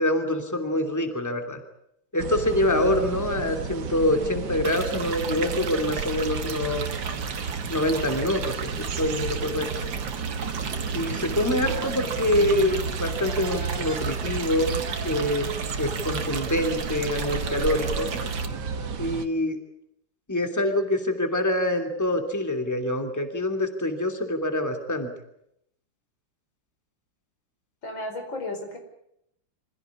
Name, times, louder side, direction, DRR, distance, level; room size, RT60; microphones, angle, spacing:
voice 1, 0.0-1.6 2.1-6.9 7.7-9.9 10.9-15.5 15.8-18.2 19.0-19.6 20.3-25.1, left 1 dB, 10° left, 5 dB, 2.9 m, -25 dB
sound 1, 2.2-19.3, right 5 dB, 65° right, 1.9 m, -32 dB
sound 2, 4.6-18.5, right 6 dB, 85° right, 2.6 m, -36 dB
sound 3, 11.5-12.6 13.0-14.4 14.7-16.8 17.1-19.1, right 1 dB, 35° right, 5.1 m, -42 dB
voice 2, 27.8-28.8, left 2 dB, 85° left, 4 dB, 5.6 m, -33 dB
26.0 x 16.5 x 9.8 m, 0.76 s
omnidirectional pair, 2.0 m